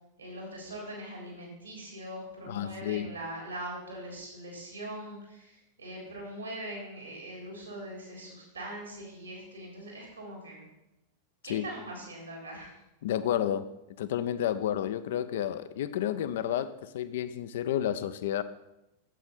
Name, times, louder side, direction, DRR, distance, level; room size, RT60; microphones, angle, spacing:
voice 1, 0.2-10.6 11.4-12.7, right 1 dB, 80° right, 3.6 m, -41 dB
voice 2, 2.5-3.1 11.5-11.6 13.0-13.7 14.0-18.4, left 10 dB, 55° left, 0.5 m, -31 dB
9.0 x 7.9 x 4.3 m
figure-of-eight pair, 90°, 0 cm